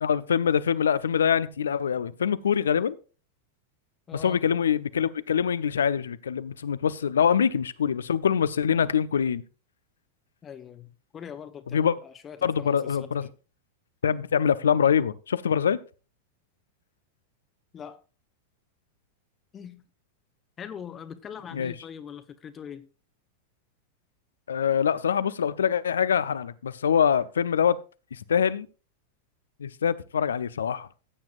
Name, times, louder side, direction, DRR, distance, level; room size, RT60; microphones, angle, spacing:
voice 1, 0.0-3.0 4.2-9.4 11.7-11.9 12.4-13.3 14.0-15.8 21.5-21.7 24.5-27.8 28.1-28.7 29.6-30.9, left 7 dB, 65° left, 0.6 m, -24 dB
voice 2, 4.1-4.5 10.4-13.3 17.7-18.0 19.5-19.9 20.6-22.9, left 8 dB, 25° left, 0.9 m, -42 dB
15.5 x 8.8 x 2.4 m
figure-of-eight pair, 90°, 0 cm